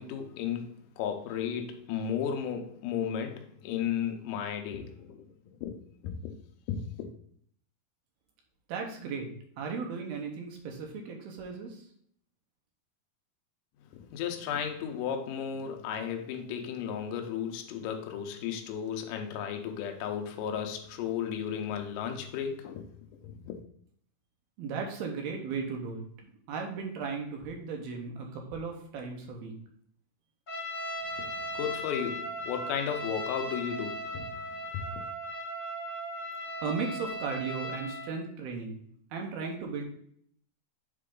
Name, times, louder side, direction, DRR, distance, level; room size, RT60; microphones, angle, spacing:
voice 1, 0.0-5.3 5.6-5.7 6.0-6.3 6.7-7.1 13.9-22.9 23.2-23.6 31.2-34.4 34.7-35.0, left 8 dB, 80° left, 1.9 m, -34 dB
voice 2, 8.7-9.3 9.6-11.8 24.6-29.5 36.6-38.8 39.1-39.8, right 5 dB, 75° right, 2.7 m, -36 dB
Trumpet, 30.5-38.1, equal, 60° left, 1.1 m, -37 dB
7.5 x 3.8 x 3.7 m
omnidirectional pair, 4.6 m